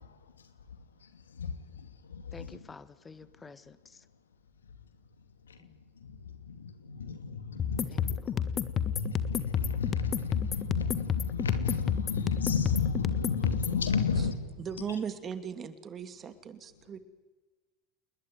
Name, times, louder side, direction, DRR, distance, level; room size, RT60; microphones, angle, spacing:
voice 1, 0.0-2.7 3.4-3.5 4.7-4.8 5.4-14.5 14.8-15.0, left 5 dB, 80° left, 2.6 m, -34 dB
voice 2, 2.3-4.0 5.6-5.8 7.9-8.0 8.3-8.4, left 4 dB, 20° left, 1.6 m, -50 dB
sound 1, 7.6-13.8, left 8 dB, 35° left, 1.6 m, -31 dB
voice 3, 14.6-17.0, right 7 dB, 35° right, 2.6 m, -38 dB
29.0 x 20.5 x 9.4 m
figure-of-eight pair, 75°, 0 cm